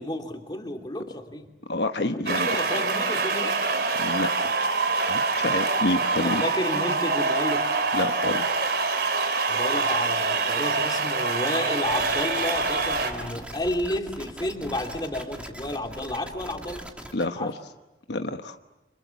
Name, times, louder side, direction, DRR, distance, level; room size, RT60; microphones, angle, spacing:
voice 1, 0.0-1.5 2.1-3.6 6.2-7.7 9.5-16.9 17.4-17.5, left 1 dB, 25° left, 3 dB, 2.8 m, -31 dB
voice 2, 1.7-2.5 3.9-4.6 5.1-6.4 7.9-8.4 17.1-17.5 18.1-18.6, left 2 dB, 75° left, 7 dB, 1.1 m, -28 dB
sound 1, 2.3-13.1, right 4 dB, 60° right, 3.4 m, -25 dB
sound 2, 11.8-17.2, equal, 5° right, 2.5 m, -40 dB
30.0 x 27.0 x 7.1 m, 1.0 s
head